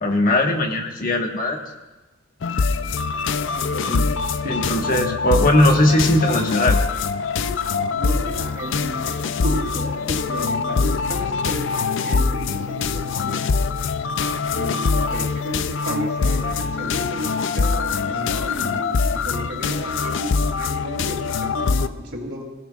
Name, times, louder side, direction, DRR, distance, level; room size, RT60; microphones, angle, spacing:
voice 1, 0.0-1.6 3.9-4.0 4.5-6.8, left 1 dB, 40° left, 2 dB, 1.5 m, -19 dB
sound 1, 2.4-21.9, left 4 dB, 60° left, 0.5 m, -23 dB
voice 2, 3.5-4.1 4.4-4.9 7.9-13.6 14.5-22.4, equal, 60° right, 0 dB, 3.2 m, -33 dB
26.5 x 17.0 x 2.4 m, 1.1 s
head